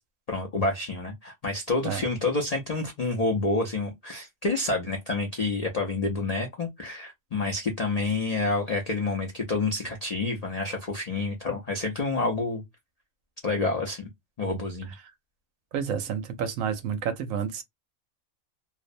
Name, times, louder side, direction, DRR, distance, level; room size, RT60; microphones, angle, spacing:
voice 1, 0.3-12.6 13.4-14.1 14.4-14.9, left 3 dB, 75° left, 0.3 m, -28 dB
voice 2, 15.7-17.6, right 7 dB, 75° right, 0.9 m, -30 dB
2.5 x 2.0 x 2.5 m
omnidirectional pair, 1.4 m